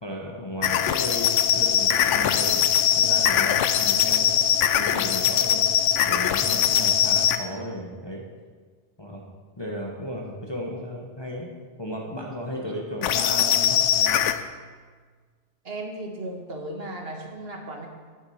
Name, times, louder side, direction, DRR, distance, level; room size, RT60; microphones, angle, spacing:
voice 1, 0.0-2.7 3.0-4.3 4.7-5.6 6.0-8.2 9.0-9.2 9.6-11.5 11.8-14.2, equal, 25° left, -1 dB, 1.1 m, -34 dB
sound 1, 0.6-7.4 13.0-14.4, left 9 dB, 85° left, 0.9 m, -21 dB
voice 2, 15.6-17.9, right 1 dB, 55° right, 2 dB, 1.6 m, -36 dB
10.5 x 7.6 x 5.6 m, 1.5 s
omnidirectional pair, 1.2 m